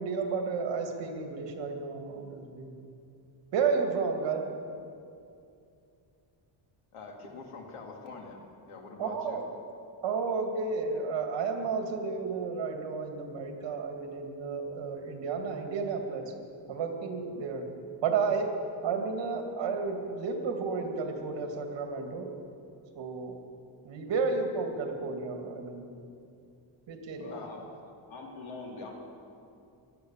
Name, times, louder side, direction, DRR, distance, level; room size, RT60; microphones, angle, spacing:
voice 1, 0.0-2.8 3.5-4.4 9.0-9.4 10.0-16.3 16.7-17.7 18.0-18.5 18.8-22.3 23.0-23.4 23.8-25.9 26.9-27.3, right 5 dB, 60° right, 4 dB, 2.2 m, -32 dB
voice 2, 6.9-9.4 27.3-27.9 28.5-28.6, left 4 dB, 85° left, 2 dB, 2.6 m, -45 dB
voice 3, 27.2-27.6 28.1-28.9, left 3 dB, 70° left, -1 dB, 3.5 m, -43 dB
16.5 x 11.5 x 7.2 m, 2.6 s
cardioid pair, 175°, 49 cm